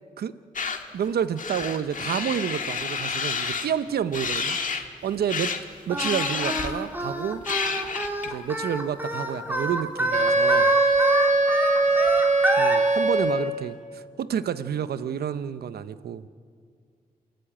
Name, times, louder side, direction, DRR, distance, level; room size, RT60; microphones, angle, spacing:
sound 1, 0.6-0.8 1.4-3.7 4.1-4.9 5.3-5.6 6.0-6.9 7.4-8.3, left 5 dB, 55° left, 1.8 m, -29 dB
voice 1, 0.9-4.6 5.0-5.6 5.9-7.4 8.3-10.7 12.6-16.2, right 8 dB, 85° right, 13 dB, 0.8 m, -29 dB
Singing, 5.9-12.8, equal, 10° right, 3.4 m, -27 dB
Wind instrument woodwind instrument, 10.1-13.7, right 3 dB, 55° right, 3.3 m, -21 dB
27.5 x 13.0 x 8.9 m, 2.1 s
cardioid pair, 80°, 16 cm